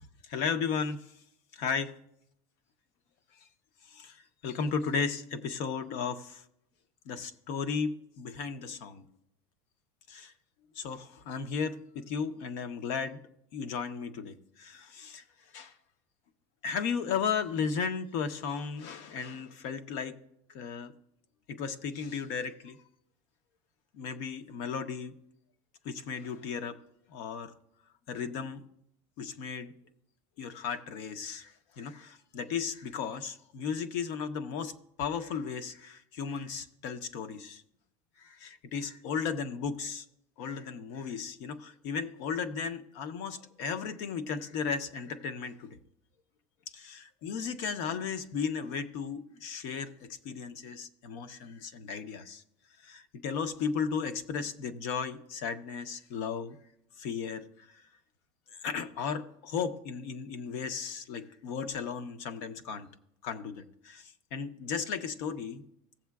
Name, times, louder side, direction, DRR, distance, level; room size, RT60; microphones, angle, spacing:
voice 1, 0.2-1.1 1.5-2.0 3.8-6.4 7.1-9.1 10.1-10.3 10.7-13.2 13.5-15.2 15.5-15.7 16.6-20.2 20.5-20.9 21.5-22.8 23.9-25.2 25.8-26.8 27.1-27.5 28.1-28.6 29.2-29.7 30.4-37.6 38.2-40.0 40.4-45.8 46.7-52.4 52.8-56.6 57.0-57.9 58.5-62.9 63.2-65.6, left 6 dB, 65° left, 0.8 m, -35 dB
16.5 x 7.3 x 2.3 m
supercardioid pair, 140°, 14 cm